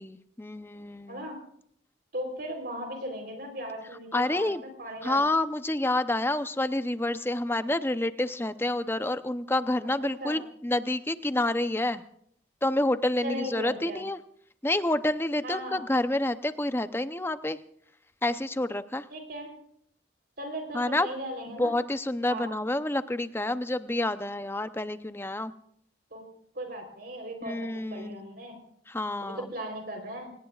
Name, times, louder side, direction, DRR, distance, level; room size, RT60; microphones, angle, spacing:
voice 1, 0.0-1.3 4.1-4.6 5.0-12.0 12.6-14.2 14.6-17.6 18.2-19.1 20.7-21.1 21.5-25.5 27.4-28.2 28.9-29.5, left 1 dB, 10° left, 11 dB, 0.7 m, -28 dB
voice 2, 1.1-1.4 2.1-4.5 4.8-5.2 10.0-10.4 13.2-14.0 15.4-15.8 19.1-19.5 20.4-21.7 22.3-22.5 26.1-26.2 26.5-28.6 29.2-30.3, right 1 dB, 55° right, 4 dB, 3.8 m, -37 dB
27.5 x 19.0 x 2.4 m, 0.66 s
head